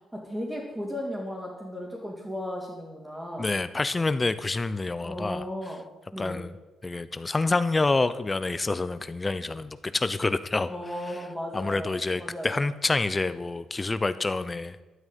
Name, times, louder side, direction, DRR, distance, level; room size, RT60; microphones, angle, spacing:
voice 1, 0.1-3.5 5.0-5.8 6.1-6.4 10.7-12.6, equal, 5° right, -5 dB, 3.1 m, -35 dB
voice 2, 3.4-5.4 6.2-6.5 6.8-10.7 11.5-14.8, left 3 dB, 20° left, 14 dB, 0.6 m, -27 dB
12.5 x 6.2 x 9.2 m, 1.1 s
cardioid pair, 90°, 0 cm